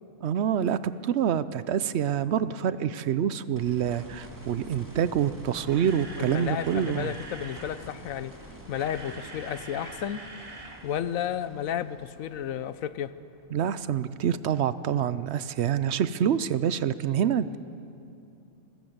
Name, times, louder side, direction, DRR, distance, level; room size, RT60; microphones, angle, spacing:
voice 1, 0.2-7.1 13.5-17.6, right 9 dB, 60° right, 15 dB, 0.8 m, -26 dB
sound 1, 3.5-14.5 16.7-16.8, right 1 dB, 15° right, 2.2 m, -48 dB
Camera, 5.7-7.8 8.5-10.8 11.1-11.2 11.7-11.8, right 2 dB, 45° right, 2.0 m, -44 dB
voice 2, 6.3-8.3 8.7-10.2 10.8-13.1, left 10 dB, 75° left, 14 dB, 1.1 m, -32 dB
26.5 x 13.5 x 7.9 m, 2.8 s
omnidirectional pair, 1.5 m